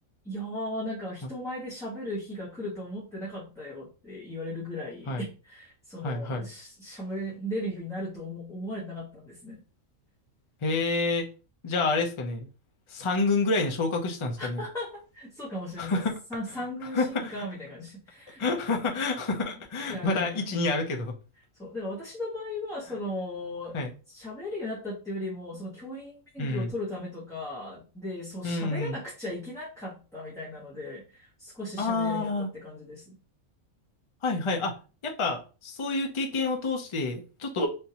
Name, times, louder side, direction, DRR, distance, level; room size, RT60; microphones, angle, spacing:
voice 1, 0.2-9.6 14.4-16.0 16.3-18.5 19.4-19.5 19.9-20.6 21.6-23.7 24.1-33.2, left 1 dB, 5° left, -8 dB, 1.0 m, -37 dB
voice 2, 6.0-6.5 10.6-11.3 11.6-12.5 12.9-14.6 15.8-16.1 16.9-17.4 18.4-21.1 23.7-23.9 26.4-26.7 28.4-29.0 31.8-32.5 34.2-34.8 35.0-37.7, left 3 dB, 45° left, 2 dB, 0.4 m, -28 dB
3.5 x 2.6 x 2.8 m, 0.34 s
omnidirectional pair, 1.4 m